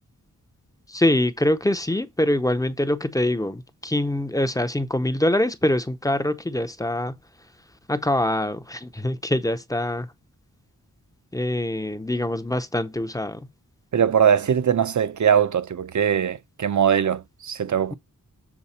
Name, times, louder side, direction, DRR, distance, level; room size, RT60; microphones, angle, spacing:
voice 1, 0.9-7.2 7.9-10.1 11.3-13.5, left 1 dB, 10° left, 0.6 m, -24 dB
voice 2, 13.9-17.9, right 8 dB, 55° right, 0.7 m, -21 dB
7.1 x 4.1 x 4.2 m
wide cardioid pair, 120°, 34 cm